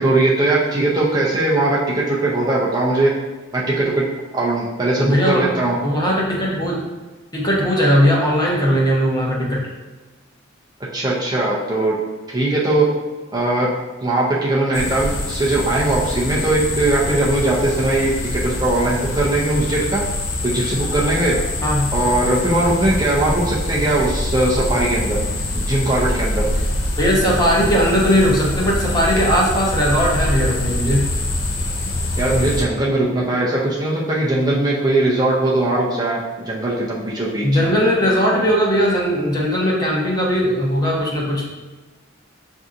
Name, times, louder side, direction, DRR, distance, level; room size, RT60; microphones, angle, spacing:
voice 1, 0.0-3.1 3.5-4.0 4.3-5.8 10.9-11.9 12.3-12.9 13.3-13.7 14.0-20.0 20.4-21.3 21.9-25.2 25.5-26.4 32.2-37.5, right 2 dB, 20° right, -5 dB, 0.6 m, -19 dB
voice 2, 5.0-6.8 7.3-9.7 21.6-21.9 27.0-31.1 37.4-41.5, equal, 20° left, -4 dB, 0.9 m, -18 dB
sound 1, 14.7-32.6, left 1 dB, 70° left, 0.6 m, -24 dB
7.0 x 2.7 x 2.5 m, 1.3 s
head